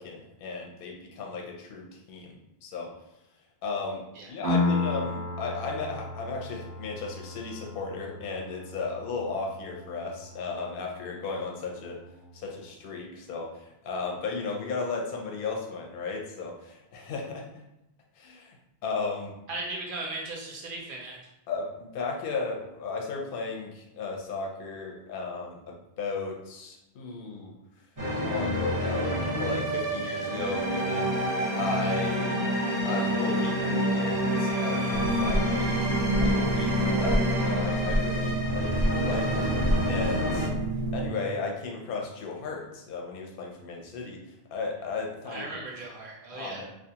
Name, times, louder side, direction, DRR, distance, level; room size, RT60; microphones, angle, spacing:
voice 1, 0.0-2.9 3.6-12.0 12.3-17.5 18.2-18.6 18.8-19.3 21.5-27.5 28.2-31.1 31.6-32.5 32.8-35.9 36.2-39.3 39.6-40.5 40.9-45.6 46.3-46.7, left 4 dB, 65° left, 0 dB, 0.7 m, -35 dB
Piano, 4.4-11.8, left 2 dB, 90° right, 1.0 m, -34 dB
voice 2, 19.5-21.2 45.3-46.7, right 2 dB, 60° right, -2 dB, 0.7 m, -37 dB
sound 1, 28.0-40.5, equal, 20° right, 0.6 m, -28 dB
sound 2, 34.9-41.1, right 1 dB, 30° left, 0.4 m, -28 dB
2.3 x 2.2 x 2.7 m, 0.87 s
omnidirectional pair, 1.1 m